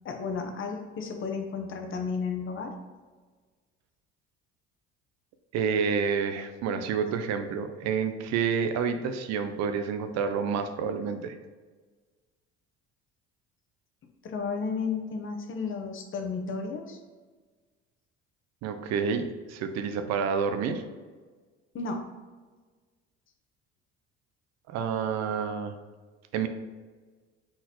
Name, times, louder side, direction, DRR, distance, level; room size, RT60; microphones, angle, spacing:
voice 1, 0.0-2.7 14.2-17.0 21.7-22.0, left 5 dB, 45° left, 4 dB, 0.8 m, -33 dB
voice 2, 5.5-11.4 18.6-20.8 24.7-25.7 26.3-26.5, right 6 dB, 65° right, 8 dB, 0.6 m, -29 dB
4.1 x 4.0 x 3.0 m, 1.4 s
supercardioid pair, 75°, 29 cm